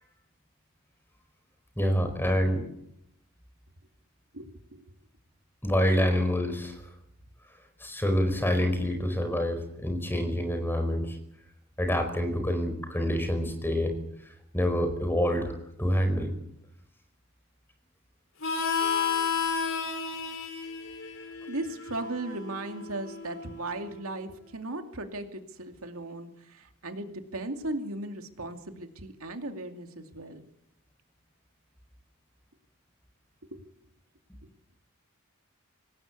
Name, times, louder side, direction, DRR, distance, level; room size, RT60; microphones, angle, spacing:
voice 1, 1.8-2.6 5.6-6.8 7.8-11.2 11.8-13.9 14.5-16.3, equal, 10° left, 6 dB, 5.0 m, -27 dB
voice 2, 4.3-4.8 21.5-30.4 33.5-33.6, right 2 dB, 75° right, 5 dB, 2.5 m, -37 dB
Harmonica, 18.4-23.7, left 6 dB, 65° left, 4.7 m, -32 dB
25.5 x 19.0 x 8.4 m, 0.78 s
head